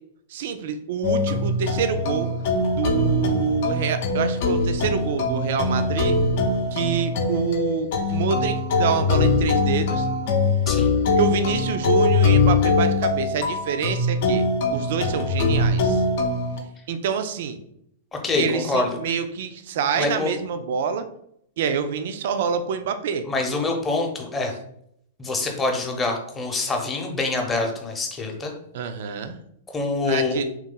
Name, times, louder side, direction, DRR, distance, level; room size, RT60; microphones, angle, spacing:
voice 1, 0.3-2.3 2.7-6.2 6.7-10.1 11.1-14.5 14.7-16.0 16.9-17.6 18.4-21.1 21.6-23.3 28.7-29.4 30.0-30.5, right 7 dB, 50° right, 9 dB, 0.4 m, -26 dB
sound 1, 1.0-16.6, left 3 dB, 50° left, 0.7 m, -22 dB
voice 2, 18.2-18.9 19.9-20.3 23.2-24.5 25.2-28.5 29.7-30.4, left 3 dB, 15° left, 2 dB, 0.8 m, -25 dB
3.4 x 3.1 x 3.8 m, 0.72 s
figure-of-eight pair, 105°, 0 cm